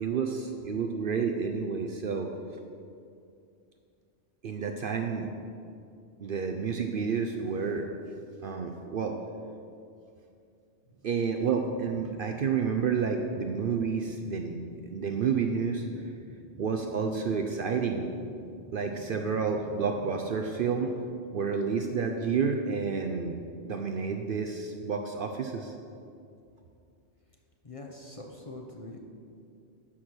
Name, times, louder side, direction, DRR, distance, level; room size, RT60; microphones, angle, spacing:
voice 1, 0.0-2.3 4.4-5.3 6.2-7.9 8.4-9.2 11.0-16.2 16.6-18.1 18.7-21.0 21.3-25.7, right 5 dB, 60° right, 4 dB, 0.7 m, -30 dB
Low Mechanical Ambience, 10.8-21.8, right 2 dB, 65° left, 1.9 m, -52 dB
voice 2, 27.6-29.0, left 2 dB, 35° left, 1 dB, 0.7 m, -43 dB
11.5 x 4.4 x 6.2 m, 2.5 s
omnidirectional pair, 1.2 m